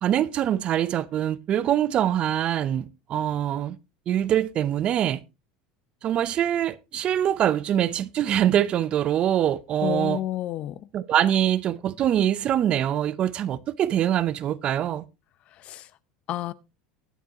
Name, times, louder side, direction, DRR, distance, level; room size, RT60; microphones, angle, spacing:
voice 1, 0.0-3.8 4.1-5.2 6.0-10.2 10.9-15.0, right 10 dB, 40° right, 0.7 m, -24 dB
voice 2, 9.8-10.9 15.5-15.9 16.3-16.5, left 13 dB, 50° left, 0.7 m, -30 dB
20.0 x 7.1 x 2.9 m
supercardioid pair, 115°, 3 cm